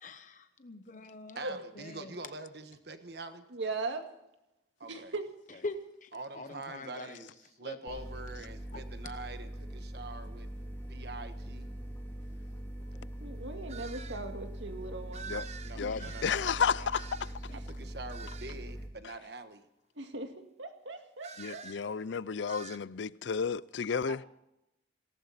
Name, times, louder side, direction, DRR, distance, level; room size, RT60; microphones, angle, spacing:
voice 1, 0.0-2.2 5.5-7.3 7.6-8.0 8.7-8.8 15.8-16.1, left 2 dB, 40° left, 1.0 m, -44 dB
voice 2, 1.3-3.4 4.8-5.1 6.1-7.3 7.6-10.5 10.9-11.7 15.6-16.5 16.8-16.9 17.5-19.6, right 3 dB, 55° right, 1.3 m, -45 dB
voice 3, 3.5-4.1 4.9-5.3 5.5-5.6 13.2-15.4 17.5-17.6 20.0-21.9 24.1-24.3, right 3 dB, 75° right, 2.1 m, -39 dB
sound 1, 7.9-18.9, right 1 dB, 10° left, 2.6 m, -42 dB
sound 2, 13.7-14.2 15.1-17.5 18.1-18.6 21.2-21.9 22.5-22.8, right 7 dB, 35° right, 0.7 m, -47 dB
voice 4, 15.8-17.0 21.4-24.2, left 6 dB, 70° left, 0.5 m, -32 dB
18.0 x 18.0 x 4.2 m
head